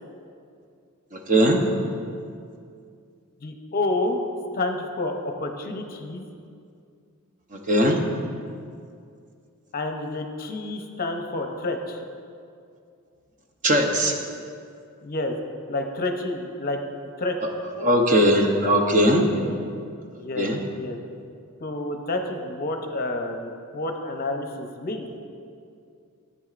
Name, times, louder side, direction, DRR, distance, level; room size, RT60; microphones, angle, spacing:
voice 1, 1.1-1.6 7.7-8.0 13.6-14.2 17.8-19.3 20.4-20.6, equal, 35° right, 2 dB, 0.8 m, -19 dB
voice 2, 3.4-4.2 4.5-6.3 9.7-12.0 15.0-15.3 15.7-16.8 17.2-17.4 19.3-19.5 20.2-20.5 20.7-21.0 21.6-25.0, left 2 dB, 40° left, 4 dB, 0.6 m, -29 dB
13.5 x 8.4 x 2.5 m, 2.4 s
head